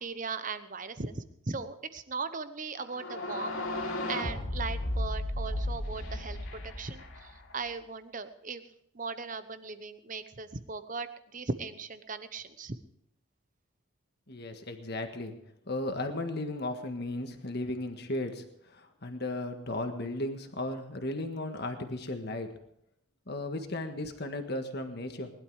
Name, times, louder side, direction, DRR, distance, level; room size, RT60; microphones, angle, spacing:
voice 1, 0.0-6.4 6.6-8.6 8.9-12.8, right 4 dB, 40° right, 11 dB, 0.9 m, -38 dB
sound 1, 2.9-7.7, left 1 dB, 75° left, 2.8 m, -34 dB
voice 2, 14.3-15.3 15.7-22.5 23.3-25.3, left 2 dB, 50° left, 6 dB, 1.6 m, -35 dB
20.0 x 12.0 x 4.8 m, 0.77 s
head